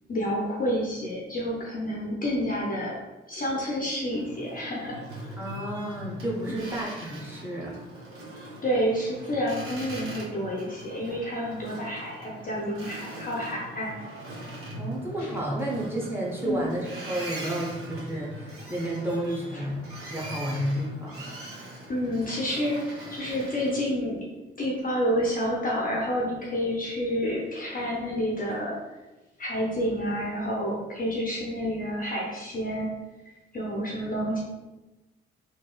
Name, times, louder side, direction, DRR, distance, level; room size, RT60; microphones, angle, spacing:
voice 1, 0.1-3.0 3.3-4.9 8.6-13.9 16.4-16.7 19.5-19.6 21.9-22.8 23.1-24.2 24.6-28.8 29.4-32.9 33.5-34.4, equal, 30° left, -3 dB, 0.6 m, -29 dB
Boat Water vehicle, 4.1-23.9, right 1 dB, 45° right, 0.9 m, -41 dB
voice 2, 5.4-7.7 14.8-21.2, right 1 dB, 5° right, -4 dB, 0.8 m, -31 dB
Guitar, 15.2-16.3, left 1 dB, 75° left, 0.6 m, -42 dB
2.9 x 2.6 x 2.3 m, 1.1 s
figure-of-eight pair, 40°, 31 cm